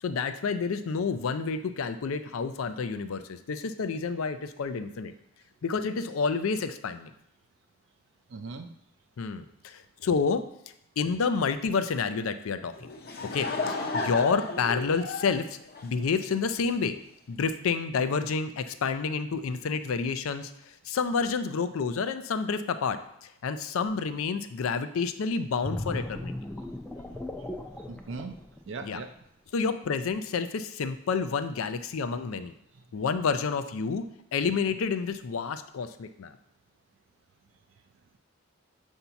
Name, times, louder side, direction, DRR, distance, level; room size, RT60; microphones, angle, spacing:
voice 1, 0.0-5.1 5.6-7.1 9.2-10.4 11.0-12.9 13.3-17.0 17.3-26.3 28.8-29.0 29.5-32.5 32.9-36.4, left 5 dB, 90° left, 10 dB, 0.4 m, -29 dB
voice 2, 8.3-8.7 27.9-28.3 28.7-29.1 32.7-32.8, right 4 dB, 60° right, 6 dB, 0.4 m, -38 dB
Laughter / Crowd, 12.8-16.5, left 3 dB, 50° left, 0.7 m, -33 dB
sound 1, 25.6-29.2 29.7-29.9, left 1 dB, 5° left, 0.4 m, -37 dB
6.9 x 2.7 x 5.6 m, 0.77 s
head